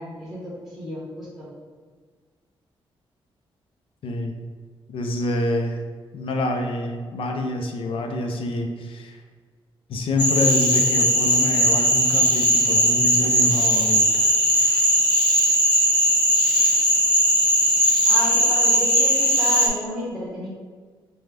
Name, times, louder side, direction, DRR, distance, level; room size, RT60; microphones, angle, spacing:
voice 1, 0.0-1.5 18.1-20.5, equal, 5° right, -6 dB, 1.2 m, -31 dB
voice 2, 4.0-4.4 4.9-5.8 6.1-9.2 9.9-14.3 14.6-14.8, left 1 dB, 70° left, 3 dB, 0.5 m, -27 dB
Cricket / Frog, 10.2-19.7, equal, 50° left, 1.0 m, -19 dB
5.2 x 2.3 x 3.3 m, 1.5 s
wide cardioid pair, 130°, 10 cm